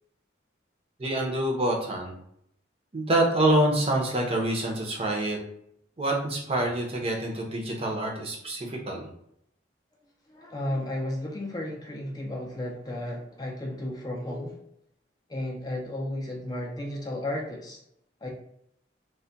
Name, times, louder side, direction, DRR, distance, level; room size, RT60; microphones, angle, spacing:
voice 1, 1.0-2.1 2.9-5.4 6.0-9.1, right 1 dB, 35° right, 0 dB, 0.6 m, -26 dB
voice 2, 10.3-14.7 15.3-17.8 18.2-18.3, left 1 dB, 20° left, -1 dB, 0.4 m, -33 dB
2.2 x 2.1 x 3.8 m, 0.73 s
head